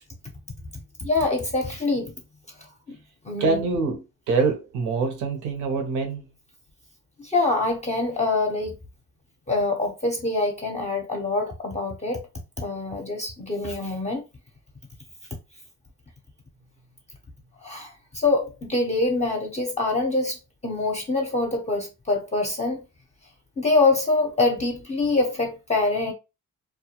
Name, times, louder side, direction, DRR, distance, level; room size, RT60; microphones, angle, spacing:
voice 1, 1.0-2.1 2.6-3.0 3.2-3.6 7.2-8.8 9.5-12.2 12.6-14.2 17.6-20.4 20.6-22.8 23.6-26.1, left 3 dB, 25° left, 0.6 m, -25 dB
voice 2, 3.4-4.0 4.3-6.3, right 4 dB, 85° right, 0.8 m, -24 dB
2.3 x 2.1 x 2.8 m
cardioid pair, 90°, 30 cm